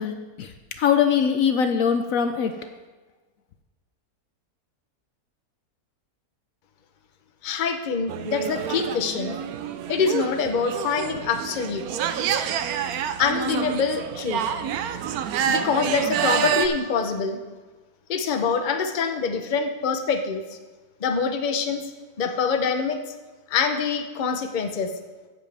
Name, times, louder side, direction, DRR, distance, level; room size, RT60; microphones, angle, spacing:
voice 1, 0.0-2.7, left 7 dB, 65° left, 7 dB, 1.0 m, -22 dB
voice 2, 7.4-9.4 9.9-11.8 13.2-14.4 15.5-17.4 18.1-20.6 21.0-21.9 22.2-23.0 23.5-24.9, left 5 dB, 40° left, 6 dB, 0.8 m, -25 dB
sound 1, 8.1-16.7, right 8 dB, 75° right, 1.1 m, -28 dB
15.5 x 7.4 x 3.4 m, 1.3 s
omnidirectional pair, 1.6 m